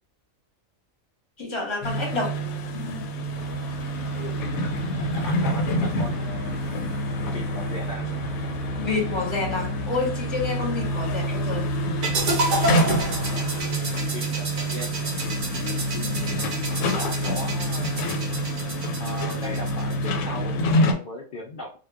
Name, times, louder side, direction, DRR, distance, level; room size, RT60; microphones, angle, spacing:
voice 1, 1.4-2.3 2.7-3.1 4.1-4.6 8.8-11.7, left 3 dB, 25° left, 0.7 m, -29 dB
sound 1, 1.8-20.9, equal, 90° left, 1.0 m, -27 dB
sound 2, 3.3-13.7, left 2 dB, 10° right, 0.9 m, -41 dB
voice 2, 5.1-6.6 7.2-8.1 10.9-11.1 13.3-14.9 16.0-16.4 16.9-18.1 19.0-21.7, left 1 dB, 70° left, 0.5 m, -38 dB
sound 3, 12.0-20.1, right 3 dB, 55° right, 0.6 m, -30 dB
2.2 x 2.1 x 3.4 m
omnidirectional pair, 1.4 m